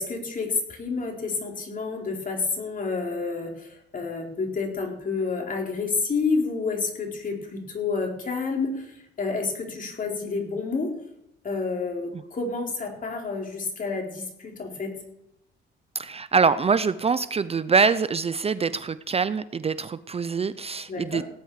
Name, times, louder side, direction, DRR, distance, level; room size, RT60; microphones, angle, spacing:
voice 1, 0.0-10.9 11.4-15.0 20.9-21.2, left 4 dB, 45° left, 1 dB, 4.2 m, -29 dB
voice 2, 15.9-21.2, right 5 dB, 30° right, 15 dB, 0.6 m, -24 dB
18.0 x 10.0 x 4.9 m, 0.78 s
cardioid pair, 90°, 20 cm